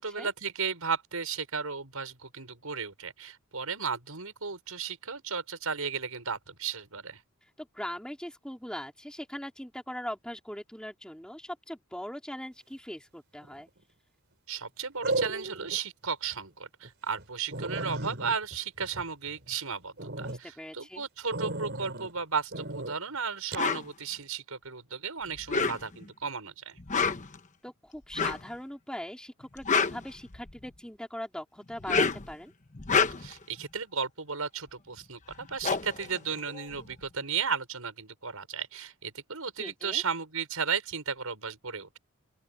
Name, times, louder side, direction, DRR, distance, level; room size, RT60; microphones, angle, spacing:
voice 1, 0.0-7.2 14.5-26.8 33.2-42.0, right 6 dB, 80° right, 5.8 m, -34 dB
voice 2, 7.6-13.7 20.3-21.0 27.6-32.5 39.6-40.0, equal, 5° left, 2.9 m, -40 dB
sound 1, 13.4-13.8 15.0-15.8 16.2-16.4 16.8-16.9 17.2-17.3 17.5-19.6 20.0-20.4 21.3-22.1 22.5-22.9 23.5-23.7, right 2 dB, 50° right, 5.3 m, -34 dB
sound 2, 23.6-23.8 25.4-26.1 26.8-27.4 28.1-28.5 29.4-30.7 31.7-32.3 32.7-33.4 35.0-35.1 35.3-37.0, left 5 dB, 35° left, 1.1 m, -28 dB
open air
head